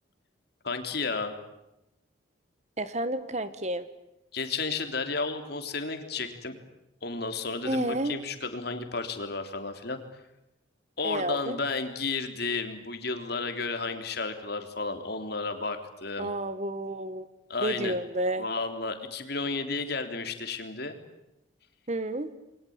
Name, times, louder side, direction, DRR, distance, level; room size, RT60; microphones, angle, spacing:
voice 1, 0.6-1.3 4.3-6.6 7.0-10.0 11.0-16.3 17.5-18.0 18.4-21.0, left 4 dB, 55° left, 6 dB, 3.5 m, -32 dB
voice 2, 2.8-3.9 7.6-8.2 11.0-11.6 16.2-17.3 17.6-18.5 21.9-22.3, right 1 dB, 35° right, 12 dB, 1.5 m, -30 dB
29.5 x 23.0 x 8.9 m, 0.91 s
head